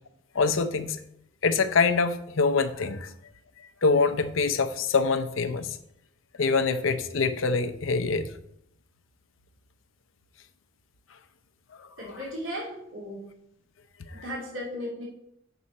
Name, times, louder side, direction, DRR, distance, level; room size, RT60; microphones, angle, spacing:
voice 1, 0.3-1.0 1.4-3.1 3.8-5.8 6.4-8.3 11.8-12.2, left 4 dB, 90° left, 11 dB, 0.7 m, -25 dB
voice 2, 12.0-13.2 14.1-15.0, equal, 85° right, -4 dB, 2.6 m, -36 dB
8.2 x 6.0 x 4.2 m, 0.75 s
head